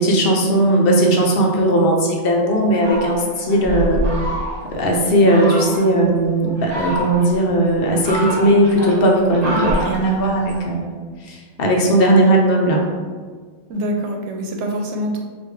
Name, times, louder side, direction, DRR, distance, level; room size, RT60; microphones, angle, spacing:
voice 1, 0.0-4.1 4.7-10.9 11.2-12.8, right 1 dB, 65° left, 0 dB, 0.7 m, -17 dB
Fowl, 2.7-4.8 5.3-5.9 6.5-7.4 7.8-10.6, equal, 40° right, 0.8 m, -26 dB
voice 2, 13.7-15.2, equal, 85° right, 2 dB, 0.9 m, -24 dB
3.4 x 2.4 x 3.1 m, 1.5 s
omnidirectional pair, 1.2 m